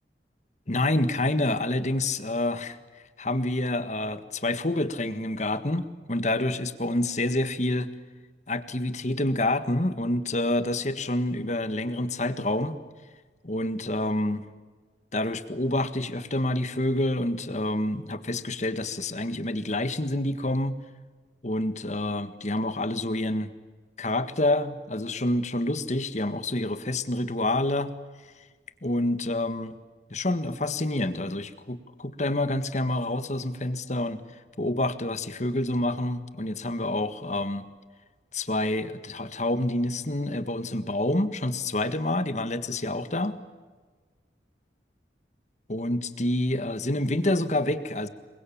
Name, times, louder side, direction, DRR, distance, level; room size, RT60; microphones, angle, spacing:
voice 1, 0.7-2.8 3.2-7.9 8.5-12.8 13.4-14.4 15.1-20.8 21.4-23.5 24.0-27.9 28.8-29.8 30.1-34.2 34.6-37.6 38.3-43.4 45.7-48.1, left 1 dB, 40° left, 12 dB, 1.6 m, -27 dB
28.5 x 23.0 x 8.7 m, 1.4 s
head